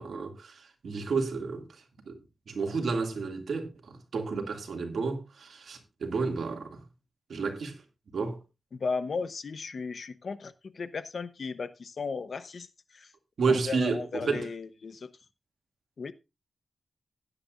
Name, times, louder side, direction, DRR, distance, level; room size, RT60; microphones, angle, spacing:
voice 1, 0.0-1.6 2.1-2.2 2.5-6.8 7.3-7.8 8.1-8.4 13.4-14.5, right 4 dB, 90° right, 2.3 m, -31 dB
voice 2, 8.7-12.7 12.9-13.1 13.7-15.1 16.0-16.1, left 4 dB, 60° left, 0.8 m, -35 dB
16.0 x 10.0 x 2.5 m
wide cardioid pair, 140°, 0 cm